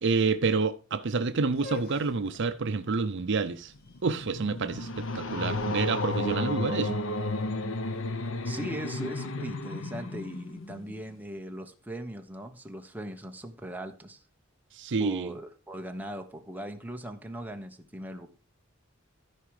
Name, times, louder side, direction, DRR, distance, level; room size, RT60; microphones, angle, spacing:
voice 1, 0.0-3.7 4.0-7.0 14.7-15.3, right 4 dB, 60° right, 0.6 m, -28 dB
sound 1, 1.5-7.4, left 4 dB, 50° left, 1.2 m, -48 dB
sound 2, 3.8-11.1, left 2 dB, 70° left, 1.0 m, -33 dB
voice 2, 8.4-14.2 15.0-18.3, right 1 dB, 10° right, 1.1 m, -39 dB
14.0 x 5.0 x 4.8 m
head